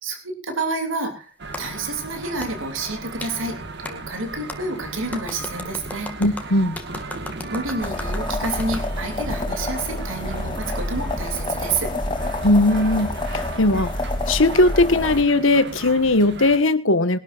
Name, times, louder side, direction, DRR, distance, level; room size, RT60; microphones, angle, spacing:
voice 1, 0.0-1.3 1.6-6.1 7.5-11.9, right 3 dB, 75° right, 6 dB, 3.0 m, -29 dB
sound 1, 1.4-16.6, right 3 dB, 60° right, 1.7 m, -36 dB
Clapping, 1.5-1.6 2.4-2.5 3.2-3.3 3.8-4.0 4.5-4.6 5.1-8.9, left 2 dB, 10° left, 2.0 m, -35 dB
voice 2, 6.2-6.8 12.4-13.9 14.3-17.2, left 2 dB, 70° left, 11 dB, 1.5 m, -18 dB
sound 2, 7.8-15.2, left 1 dB, 25° left, 3.2 m, -28 dB
22.5 x 12.0 x 2.5 m, 0.32 s
head